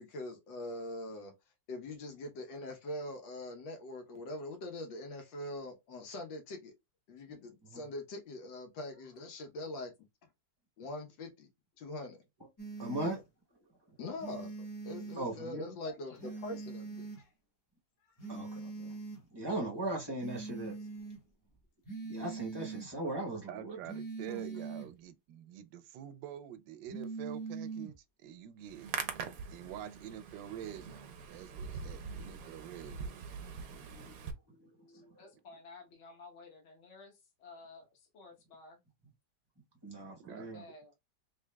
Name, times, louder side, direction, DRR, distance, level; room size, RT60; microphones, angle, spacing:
voice 1, 0.0-1.3 1.7-6.7 7.1-9.9 10.8-11.5 11.8-12.2 14.0-14.5 14.8-17.3, left 1 dB, 85° left, 1.7 m, -43 dB
sound 1, 12.6-13.2 14.2-15.2 16.2-17.2 18.2-19.2 20.2-21.2 21.8-22.9 23.8-24.9 26.9-27.9, right 4 dB, 15° left, 0.9 m, -42 dB
voice 2, 12.8-13.2 15.2-15.6 18.3-19.0 19.3-20.8 22.1-23.8 24.3-24.4 33.7-35.1 39.8-40.6, right 1 dB, 20° right, 0.6 m, -39 dB
voice 3, 15.8-16.4 20.8-20.9 31.7-31.8 34.9-38.8 40.1-41.0, left 3 dB, 45° left, 1.3 m, -54 dB
voice 4, 23.5-28.9 29.5-33.2 40.3-40.5, right 10 dB, 85° right, 1.3 m, -47 dB
Hands, 28.6-34.3, right 6 dB, 65° right, 1.0 m, -43 dB
3.8 x 3.5 x 2.2 m
omnidirectional pair, 2.0 m